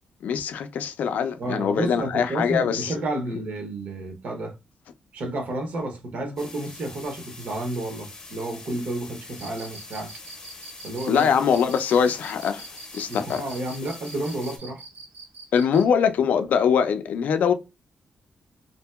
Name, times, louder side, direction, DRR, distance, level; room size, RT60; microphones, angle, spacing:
voice 1, 0.2-2.9 11.1-12.7 12.9-13.4 15.5-17.5, left 7 dB, 85° left, 0.3 m, -22 dB
voice 2, 1.4-4.5 5.1-10.1 10.8-11.3 13.1-14.8, right 1 dB, 60° right, 0.7 m, -31 dB
sound 1, 6.4-14.6, left 3 dB, 25° left, 0.6 m, -44 dB
Cricket, 9.3-15.9, right 3 dB, 85° right, 1.0 m, -44 dB
2.7 x 2.6 x 2.3 m
wide cardioid pair, 170°, 3 cm